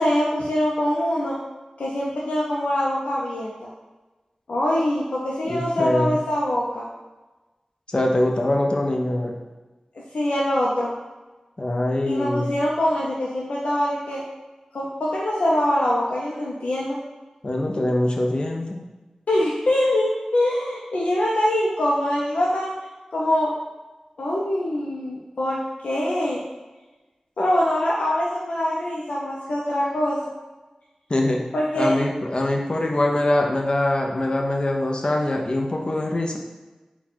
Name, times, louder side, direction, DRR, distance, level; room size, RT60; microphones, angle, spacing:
voice 1, 0.0-1.4 1.8-3.7 4.5-6.9 10.1-10.9 12.1-14.2 14.7-17.0 19.3-22.7 23.1-23.5 24.2-26.4 27.4-30.2 31.5-31.9, left 1 dB, 85° left, -5 dB, 0.5 m, -23 dB
voice 2, 5.5-6.2 7.9-9.4 11.6-12.5 17.4-18.8 31.1-31.4 31.8-36.4, left 1 dB, 45° left, 1 dB, 0.6 m, -23 dB
4.0 x 2.3 x 4.4 m, 1.2 s
cardioid pair, 45°, 2 cm